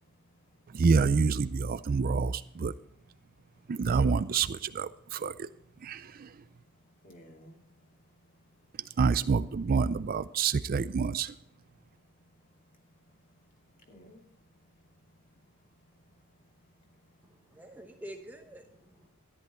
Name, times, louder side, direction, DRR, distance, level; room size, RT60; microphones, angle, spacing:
voice 1, 0.0-0.8 3.4-3.7 5.1-5.2 5.7-5.9 6.3-6.4 7.0-8.6 11.9-17.3, equal, 40° left, 1 dB, 2.7 m, -61 dB
voice 2, 0.7-2.7 3.7-5.5 5.8-6.3 9.0-11.3, right 5 dB, 40° right, 14 dB, 0.4 m, -27 dB
voice 3, 17.2-19.1, right 1 dB, 10° right, 4 dB, 0.9 m, -47 dB
13.5 x 10.5 x 4.3 m, 0.74 s
head